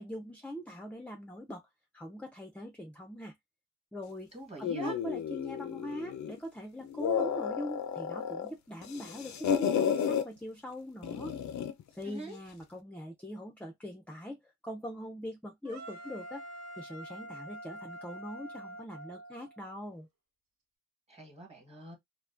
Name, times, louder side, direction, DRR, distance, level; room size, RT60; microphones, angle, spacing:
voice 1, 0.0-1.6 1.9-3.3 3.9-4.3 4.6-11.3 11.9-16.4 16.7-20.1, equal, 5° left, 0.4 m, -42 dB
voice 2, 4.3-5.0 12.0-12.4 21.1-22.0, right 2 dB, 20° right, 1.2 m, -44 dB
sound 1, 4.6-6.4 6.8-8.5 8.8-10.2 11.0-11.8, left 8 dB, 75° left, 0.5 m, -32 dB
sound 2, 15.6-19.7, right 1 dB, 65° right, 1.0 m, -46 dB
2.5 x 2.2 x 2.4 m
wide cardioid pair, 90°, 29 cm